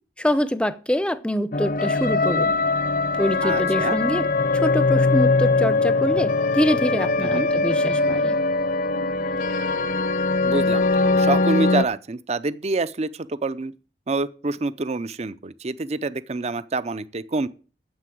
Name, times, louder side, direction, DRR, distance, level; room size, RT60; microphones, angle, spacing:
voice 1, 0.2-2.5 3.1-4.3 4.6-8.4, equal, 5° left, 0.6 m, -25 dB
sound 1, 1.5-11.8, left 3 dB, 50° left, 0.7 m, -21 dB
voice 2, 3.4-4.0 7.2-7.5 10.4-13.7 14.1-17.5, right 3 dB, 40° right, 0.5 m, -27 dB
9.5 x 7.6 x 7.7 m
head